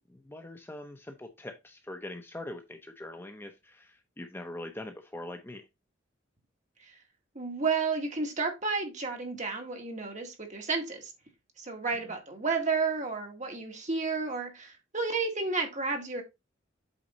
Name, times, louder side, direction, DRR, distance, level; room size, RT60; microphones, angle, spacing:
voice 1, 0.1-5.6 12.1-12.2, left 1 dB, 10° left, 0.7 m, -43 dB
voice 2, 7.4-11.1 11.6-16.2, right 4 dB, 40° right, 2.1 m, -31 dB
8.1 x 4.2 x 4.0 m
head